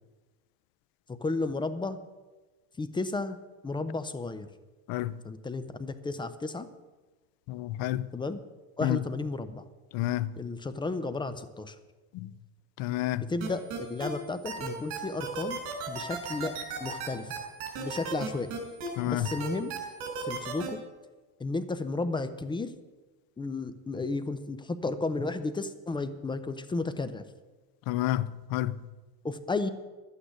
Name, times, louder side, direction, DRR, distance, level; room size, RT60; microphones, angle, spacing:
voice 1, 1.1-2.0 2.8-3.4 3.6-4.5 5.2-6.7 8.1-8.4 8.8-9.6 10.4-11.8 13.2-15.6 15.9-16.5 16.8-17.4 17.8-18.5 19.0-19.7 20.2-20.8 21.4-22.7 23.4-27.2 29.2-29.7, left 3 dB, 10° left, 0.5 m, -33 dB
voice 2, 4.9-5.2 7.5-8.1 8.8-9.0 9.9-10.4 12.1-12.3 12.8-13.3 19.0-19.3 27.9-28.8, left 14 dB, 55° left, 0.7 m, -30 dB
sound 1, 13.4-14.1 14.4-18.9 19.2-20.7, right 5 dB, 70° right, 4.0 m, -35 dB
11.5 x 8.8 x 8.1 m
cardioid pair, 135°, 41 cm